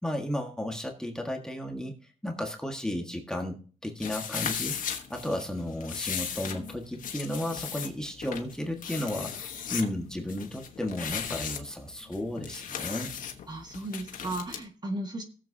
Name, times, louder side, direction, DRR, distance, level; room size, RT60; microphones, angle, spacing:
voice 1, 0.0-4.8 5.1-13.1, left 1 dB, 5° left, 2 dB, 1.6 m, -34 dB
sound 1, 4.0-14.6, left 7 dB, 90° left, 1.3 m, -37 dB
voice 2, 13.5-15.2, right 1 dB, 30° right, 3 dB, 1.7 m, -35 dB
17.5 x 7.5 x 2.8 m, 0.39 s
wide cardioid pair, 110°, 14 cm